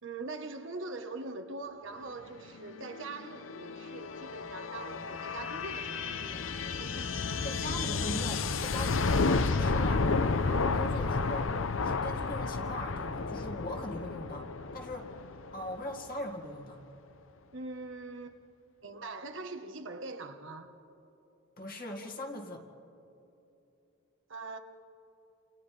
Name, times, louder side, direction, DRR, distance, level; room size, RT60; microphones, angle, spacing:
voice 1, 0.0-7.6 17.5-18.4 18.8-20.7 24.3-24.6, right 3 dB, 70° right, 1.3 m, -43 dB
sound 1, 2.7-16.1, left 4 dB, 80° left, 0.7 m, -32 dB
voice 2, 7.4-14.5 14.7-16.8 21.6-22.6, left 1 dB, 45° left, 2.2 m, -40 dB
29.0 x 28.5 x 3.4 m
head